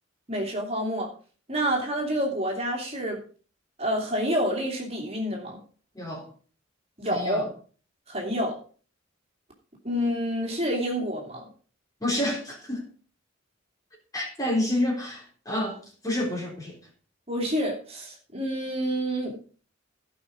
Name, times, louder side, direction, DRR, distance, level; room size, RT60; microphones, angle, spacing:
voice 1, 0.3-1.1 1.5-3.2 3.8-5.6 7.0-7.5 8.1-8.6 9.8-11.4 17.3-19.4, equal, 30° right, 2.7 m, -28 dB
voice 2, 5.9-6.3 7.1-7.5 12.0-12.9 14.1-16.8, left 1 dB, 20° left, 3.7 m, -29 dB
16.5 x 5.7 x 5.2 m
head